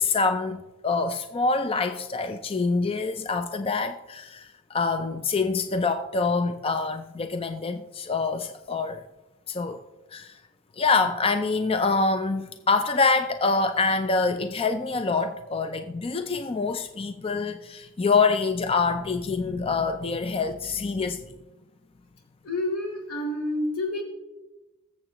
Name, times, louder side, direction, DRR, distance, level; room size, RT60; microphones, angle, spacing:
voice 1, 0.0-9.0 9.5-9.8 10.1-10.4 10.8-21.3, left 4 dB, 25° left, 0.4 m, -26 dB
voice 2, 22.4-24.0, left 1 dB, 85° left, 3.9 m, -28 dB
21.5 x 7.4 x 3.0 m
head